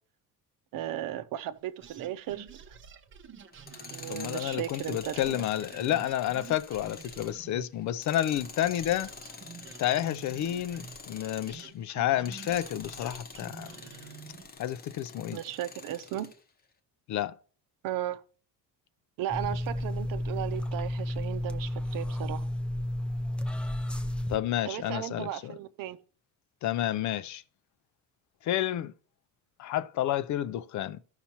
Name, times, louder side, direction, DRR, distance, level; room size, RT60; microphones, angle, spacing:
voice 1, 0.7-2.8 3.9-5.4 15.3-16.3 17.8-18.2 19.2-22.5 24.7-26.0, right 12 dB, 70° right, 0.7 m, -36 dB
sound 1, 1.8-8.1 8.3-14.6, right 6 dB, 35° right, 0.7 m, -49 dB
Tools, 3.5-11.7 12.2-16.4, left 4 dB, 25° left, 0.9 m, -47 dB
voice 2, 4.1-9.1 9.8-13.7 14.6-15.4 17.1-17.3 24.3-25.5 26.6-27.4 28.4-28.9 29.6-31.0, left 12 dB, 55° left, 0.5 m, -30 dB
sound 2, 19.3-24.4, left 1 dB, 5° left, 0.4 m, -32 dB
14.5 x 5.7 x 2.9 m
cardioid pair, 135°, 35 cm